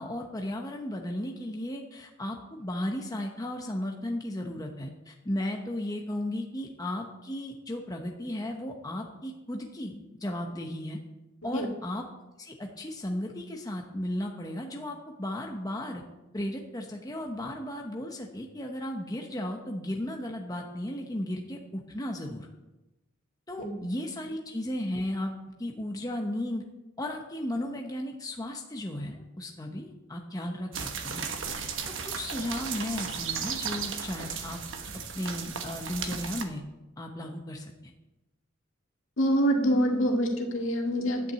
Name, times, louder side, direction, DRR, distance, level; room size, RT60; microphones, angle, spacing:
voice 1, 0.0-11.0 11.4-12.1 12.4-16.0 16.3-22.5 23.5-25.3 25.6-26.6 27.0-31.3 32.0-34.6 35.1-36.6 37.0-37.9, left 1 dB, 20° left, 2 dB, 0.9 m, -35 dB
sound 1, 30.7-36.4, right 6 dB, 65° right, 1.1 m, -35 dB
voice 2, 39.2-41.3, equal, 70° left, 1 dB, 1.9 m, -26 dB
10.5 x 6.0 x 8.0 m, 1.0 s
head